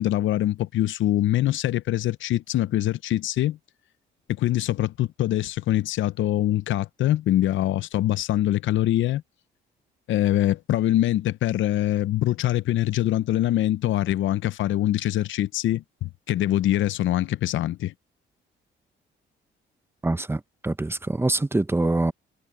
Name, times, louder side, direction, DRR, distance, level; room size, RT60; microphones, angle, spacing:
voice 1, 0.0-3.6 4.4-9.2 10.1-17.9, left 14 dB, 75° left, 0.7 m, -24 dB
voice 2, 20.0-22.1, right 2 dB, 10° right, 0.8 m, -24 dB
cardioid pair, 90°, 20 cm